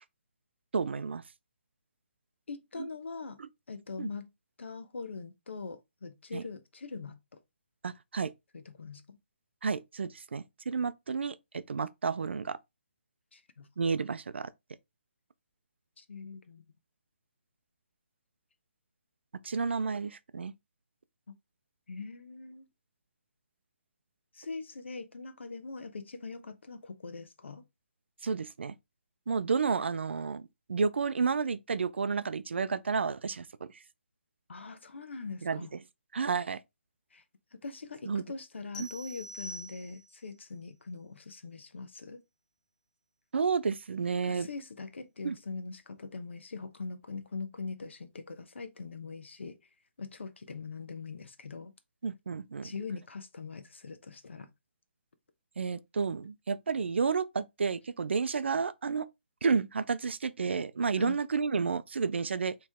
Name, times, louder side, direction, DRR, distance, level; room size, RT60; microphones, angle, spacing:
voice 1, 0.7-1.2 2.8-2.9 3.4-3.5 4.0-4.1 6.3-6.4 7.8-8.3 9.6-12.6 13.8-14.5 19.4-20.5 28.2-28.7 29.3-30.4 30.7-33.7 35.4-35.7 36.1-36.6 38.1-38.2 38.8-38.9 43.3-44.5 45.2-45.4 52.0-52.7 55.6-59.1 59.4-62.6, right 5 dB, 70° right, 0.5 m, -31 dB
voice 2, 2.5-3.4 3.7-4.3 4.6-7.2 8.5-9.2 13.3-13.7 16.0-16.6 21.3-21.4 21.9-22.7 24.3-27.6 34.5-35.7 37.1-37.2 37.5-42.2 44.2-49.6 50.0-51.7 52.6-54.5 61.0-61.2, left 4 dB, 75° left, 0.9 m, -42 dB
sound 1, 38.7-40.3, equal, 40° left, 1.4 m, -45 dB
4.6 x 3.2 x 3.5 m
hypercardioid pair, 170°, 6 cm